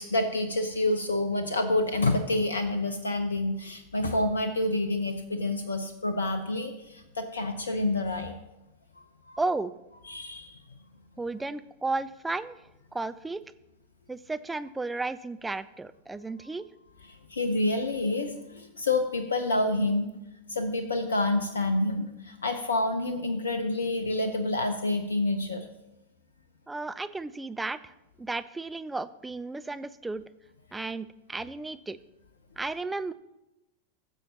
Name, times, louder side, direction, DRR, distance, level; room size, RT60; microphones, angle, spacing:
voice 1, 0.0-8.3 9.3-9.4 10.0-10.6 17.1-20.1 20.5-25.7, left 2 dB, 70° left, 9 dB, 0.7 m, -28 dB
voice 2, 9.4-9.7 11.2-13.4 14.1-16.6 26.7-27.9 28.2-30.2 30.7-32.0 32.6-33.1, right 3 dB, 10° right, 12 dB, 0.4 m, -33 dB
16.0 x 7.2 x 2.8 m, 0.95 s
figure-of-eight pair, 90°, 0 cm